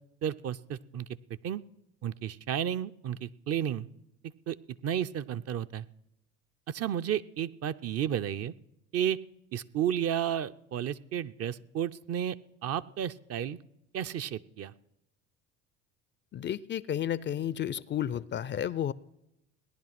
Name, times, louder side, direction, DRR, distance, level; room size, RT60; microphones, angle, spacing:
voice 1, 0.2-1.1 1.4-1.6 2.0-3.9 4.5-4.6 4.8-5.8 6.7-8.5 8.9-9.2 9.5-12.4 12.6-13.6 13.9-14.7, right 9 dB, 40° right, 11 dB, 0.6 m, -32 dB
voice 2, 16.3-18.9, left 10 dB, 30° left, 20 dB, 0.5 m, -32 dB
18.0 x 10.5 x 5.9 m, 0.86 s
hypercardioid pair, 65°, 37 cm